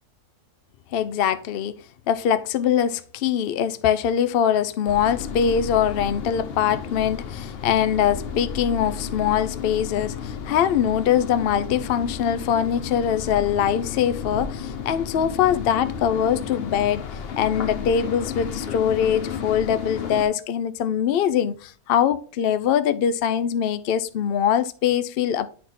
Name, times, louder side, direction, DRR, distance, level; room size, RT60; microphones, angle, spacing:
voice 1, 0.9-1.8 2.1-17.0 17.4-25.5, left 9 dB, 75° left, 0.5 m, -22 dB
sound 1, 4.9-20.2, left 7 dB, 50° left, 0.9 m, -33 dB
10.0 x 4.3 x 4.1 m
omnidirectional pair, 1.6 m